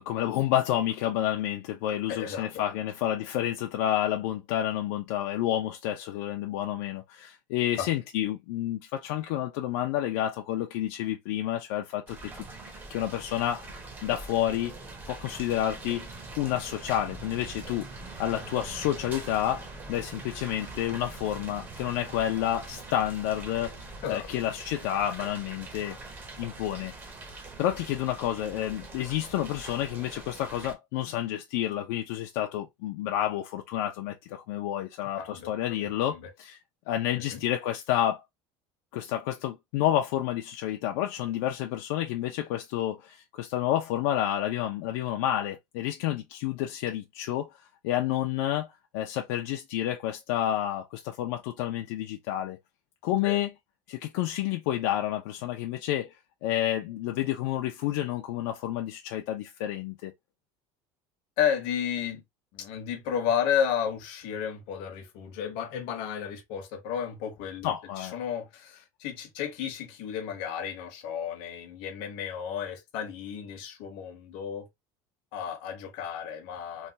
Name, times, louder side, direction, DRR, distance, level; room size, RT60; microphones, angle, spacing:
voice 1, 0.1-12.5 12.7-14.7 15.1-16.1 16.4-17.9 18.2-26.0 26.4-26.9 27.6-36.6 36.9-38.2 38.9-47.5 47.8-48.7 48.9-52.6 53.0-53.5 53.9-56.1 56.4-60.1 67.6-68.2, left 12 dB, 75° left, 0.5 m, -30 dB
voice 2, 2.1-2.6 7.8-7.9 24.0-24.3 35.2-35.5 36.1-36.3 37.3-37.4 53.2-53.4 61.4-62.2 62.5-74.7 75.3-76.9, left 8 dB, 55° left, 0.9 m, -32 dB
sound 1, 12.1-30.7, right 3 dB, 20° right, 0.6 m, -43 dB
3.2 x 2.2 x 2.6 m
cardioid pair, 180°, 11 cm